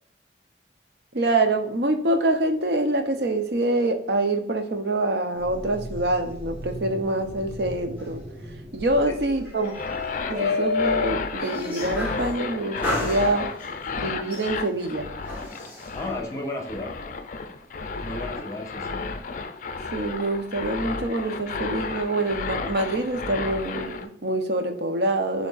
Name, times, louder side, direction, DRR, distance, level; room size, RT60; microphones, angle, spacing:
voice 1, 1.1-8.2 8.7-9.7 10.3-13.4 14.0-15.1 19.9-25.5, right 2 dB, 65° right, 6 dB, 0.7 m, -25 dB
sound 1, 5.3-12.3 12.8-13.8 14.3-15.9, left 3 dB, 10° right, 1.5 m, -32 dB
sound 2, 9.6-24.1, left 4 dB, 45° left, 0.4 m, -33 dB
voice 2, 15.9-16.9 18.0-19.0, left 1 dB, 20° left, 2 dB, 1.1 m, -33 dB
6.2 x 3.5 x 2.4 m, 0.72 s
head